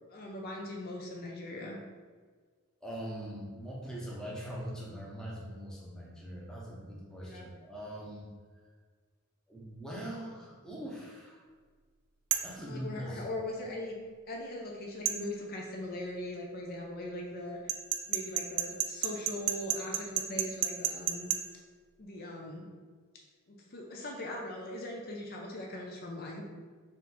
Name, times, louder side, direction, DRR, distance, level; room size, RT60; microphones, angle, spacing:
voice 1, 0.1-1.8 7.2-7.5 12.7-13.9 14.3-17.7 18.1-21.3 22.0-22.7 23.5-26.4, left 1 dB, 45° left, -1 dB, 0.5 m, -40 dB
voice 2, 2.8-8.3 9.5-11.4 12.4-13.2, equal, 5° left, -5 dB, 0.7 m, -42 dB
sound 1, 12.3-12.6 15.1-15.2 17.7-21.4, right 10 dB, 70° right, 0.3 m, -30 dB
3.6 x 2.5 x 4.3 m, 1.5 s
head